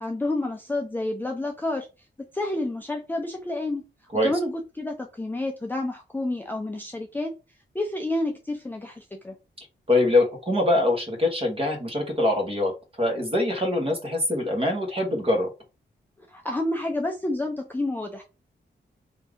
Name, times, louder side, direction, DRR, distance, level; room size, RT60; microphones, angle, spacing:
voice 1, 0.0-1.9 2.3-3.8 4.2-7.3 7.7-9.4 16.3-18.2, left 2 dB, 10° left, 1 dB, 0.4 m, -29 dB
voice 2, 9.9-12.7 13.0-15.5, left 1 dB, 30° right, 2 dB, 1.2 m, -23 dB
3.6 x 2.7 x 3.5 m, 0.29 s
wide cardioid pair, 165°, 19 cm